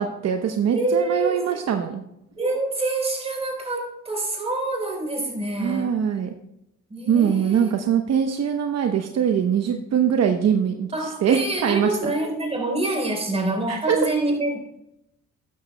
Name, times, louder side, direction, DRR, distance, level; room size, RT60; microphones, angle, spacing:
voice 1, 0.0-2.0 5.6-6.3 7.1-12.1 13.7-14.0, right 8 dB, 60° right, 5 dB, 0.9 m, -22 dB
voice 2, 0.7-1.7 2.4-5.9 6.9-7.7 10.9-14.7, right 2 dB, 20° right, 1 dB, 4.1 m, -26 dB
13.0 x 10.0 x 2.2 m, 0.83 s
cardioid pair, 90°, 30 cm